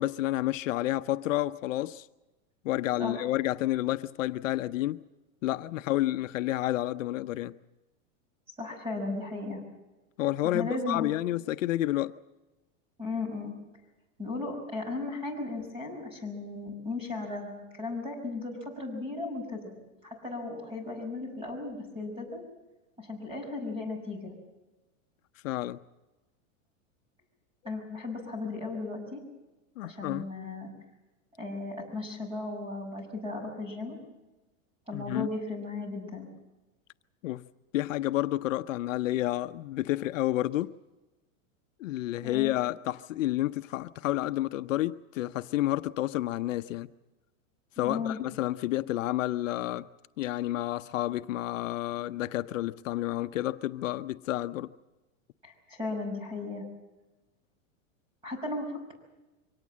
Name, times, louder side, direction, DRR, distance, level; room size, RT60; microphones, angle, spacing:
voice 1, 0.0-2.1 2.6-5.0 5.4-7.5 10.2-12.1 25.4-25.8 29.8-30.3 34.9-35.3 37.2-37.5 37.7-40.7 41.8-46.9 47.8-49.9 50.2-54.7, left 15 dB, 70° left, 0.8 m, -30 dB
voice 2, 8.6-9.6 10.4-11.1 13.0-13.5 14.2-19.8 20.0-22.4 23.0-24.3 27.6-29.2 29.8-30.7 31.4-34.0 34.9-36.3 42.2-42.5 47.8-48.2 55.4-56.6 58.2-58.9, left 3 dB, 15° right, 5.7 m, -36 dB
24.0 x 18.0 x 7.5 m
supercardioid pair, 175°, 40 cm